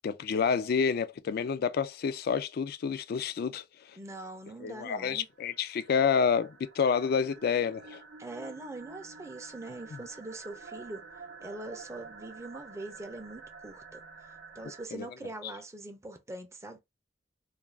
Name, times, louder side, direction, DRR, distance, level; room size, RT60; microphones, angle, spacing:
voice 1, 0.0-3.6 4.6-8.0 14.9-15.1, left 6 dB, 55° left, 0.3 m, -28 dB
voice 2, 4.0-5.3 8.2-11.0 11.4-14.0 14.6-16.8, right 2 dB, 15° right, 0.5 m, -42 dB
sound 1, 5.2-14.9, right 4 dB, 60° right, 0.6 m, -49 dB
2.4 x 2.2 x 3.2 m
head